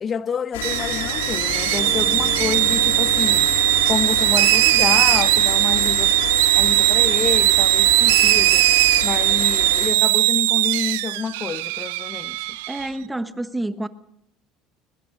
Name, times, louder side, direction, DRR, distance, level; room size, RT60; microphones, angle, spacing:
voice 1, 0.0-3.5 3.9-6.2 6.5-8.7 9.0-12.6, left 6 dB, 35° left, 0.9 m, -28 dB
sound 1, 0.5-9.9, left 8 dB, 80° left, 3.1 m, -30 dB
sound 2, 0.6-12.9, right 18 dB, 75° right, 0.8 m, -19 dB
sound 3, 1.8-7.8, right 4 dB, 45° right, 6.3 m, -39 dB
voice 2, 12.7-13.9, right 1 dB, 10° right, 1.4 m, -28 dB
23.0 x 21.0 x 5.3 m
hypercardioid pair, 75°, 0 cm